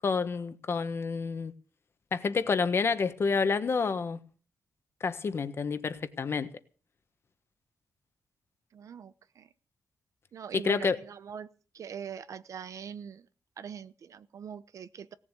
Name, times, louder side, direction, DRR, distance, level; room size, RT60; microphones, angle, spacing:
voice 1, 0.0-1.5 2.1-4.2 5.0-6.5 10.5-11.0, left 5 dB, 45° left, 1.3 m, -29 dB
voice 2, 8.7-9.5 10.3-13.3 13.6-15.1, right 7 dB, 60° right, 0.9 m, -42 dB
17.5 x 7.4 x 8.3 m
wide cardioid pair, 130°, 6 cm